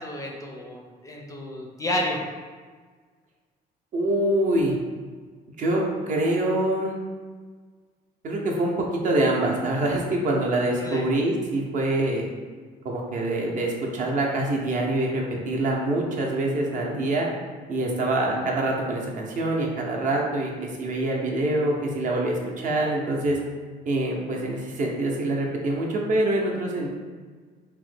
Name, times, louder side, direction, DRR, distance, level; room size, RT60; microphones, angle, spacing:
voice 1, 0.0-2.2 10.7-11.0, left 1 dB, 20° left, -1 dB, 0.4 m, -31 dB
voice 2, 3.9-4.7 5.6-6.9 8.2-12.3 12.8-17.3 17.7-23.4 23.9-27.0, right 1 dB, 50° right, -1 dB, 0.6 m, -25 dB
3.0 x 2.1 x 3.2 m, 1.5 s
cardioid pair, 110°, 17 cm